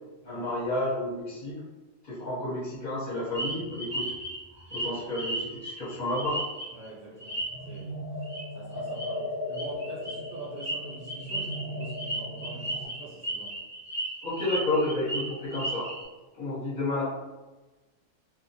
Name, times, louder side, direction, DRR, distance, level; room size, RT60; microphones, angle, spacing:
voice 1, 0.2-1.6 2.0-4.1 4.7-6.4 14.2-15.9 16.3-17.0, left 2 dB, 40° left, -7 dB, 0.9 m, -31 dB
sound 1, 3.3-6.9 7.2-7.8 8.2-8.4 8.7-9.1 9.5-16.0, right 1 dB, 5° left, 0.6 m, -35 dB
voice 2, 6.7-8.2 8.5-13.7, right 3 dB, 50° right, -6 dB, 1.0 m, -45 dB
sound 2, 7.5-12.9, left 1 dB, 60° left, 0.6 m, -37 dB
2.3 x 2.1 x 2.7 m, 1.2 s
omnidirectional pair, 1.3 m